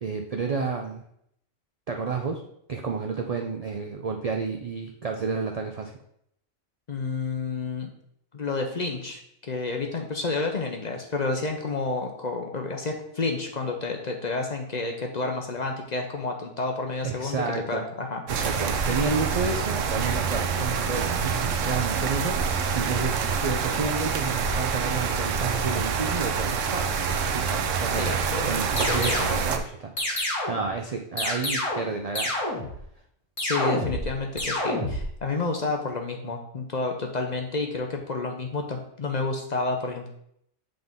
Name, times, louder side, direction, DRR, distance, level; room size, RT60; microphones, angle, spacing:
voice 1, 0.0-1.0 1.9-2.4 2.7-5.9 17.0-17.8 18.3-27.0 27.3-28.2 28.5-32.4, right 4 dB, 55° right, 2 dB, 0.4 m, -31 dB
voice 2, 6.9-7.9 8.3-18.2 18.5-18.7 27.9-29.2 33.4-40.1, left 3 dB, 45° left, 3 dB, 0.7 m, -30 dB
sound 1, 18.3-29.6, right 5 dB, 80° right, 1.0 m, -26 dB
sound 2, 28.8-29.4 30.0-30.7 31.2-31.9 32.2-32.8 33.4-34.1 34.4-35.1, left 1 dB, 25° left, 1.4 m, -28 dB
7.7 x 3.8 x 3.6 m, 0.72 s
omnidirectional pair, 1.3 m